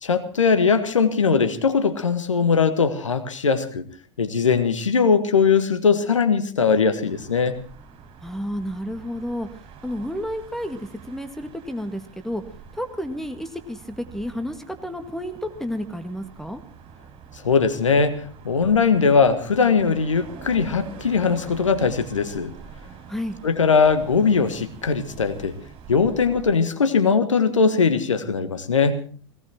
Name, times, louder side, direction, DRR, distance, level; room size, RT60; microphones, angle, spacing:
voice 1, 0.0-3.9 4.2-7.6 17.4-22.5 23.4-25.6 25.9-29.0, left 5 dB, 85° left, 10 dB, 1.7 m, -20 dB
sound 1, 7.0-26.6, right 6 dB, 35° right, 6.7 m, -45 dB
voice 2, 8.2-9.5 9.8-12.4 12.7-16.6 23.1-23.4, equal, ahead, 8 dB, 2.0 m, -31 dB
18.0 x 18.0 x 4.4 m, 0.42 s
hypercardioid pair, 85°, 16 cm